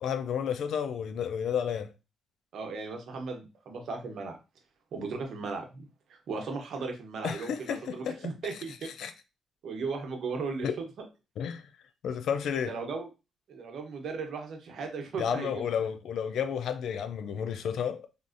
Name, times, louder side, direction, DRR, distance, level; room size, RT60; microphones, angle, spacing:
voice 1, 0.0-1.9 7.2-8.2 9.0-9.1 10.6-10.8 11.4-11.6 12.0-12.7 15.2-18.0, left 7 dB, 70° left, 0.3 m, -31 dB
voice 2, 2.5-4.4 4.9-5.9 6.3-8.9 9.6-11.0 12.7-13.1 13.5-15.7, right 4 dB, 65° right, 0.8 m, -36 dB
3.4 x 2.5 x 2.5 m
cardioid pair, 90°, 0 cm